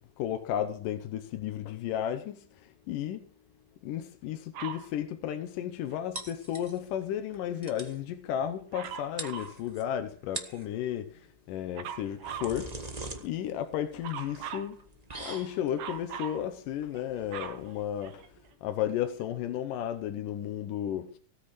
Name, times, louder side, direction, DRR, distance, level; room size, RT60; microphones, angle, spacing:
voice 1, 0.2-3.3 3.8-12.9 13.2-14.8 15.2-18.3 18.6-21.2, left 10 dB, 90° left, 2.6 m, -33 dB
Dog, 4.5-4.9 8.7-9.6 11.7-12.6 14.0-14.7 15.8-16.4 16.9-18.5 19.2-19.3, right 8 dB, 80° right, 3.0 m, -40 dB
sound 1, 6.1-7.0 7.3-7.4 7.6-8.0 8.8-8.9 9.2-9.8 10.2-10.7 11.9-18.5, right 2 dB, 45° right, 0.5 m, -43 dB
17.0 x 9.3 x 4.8 m
omnidirectional pair, 3.7 m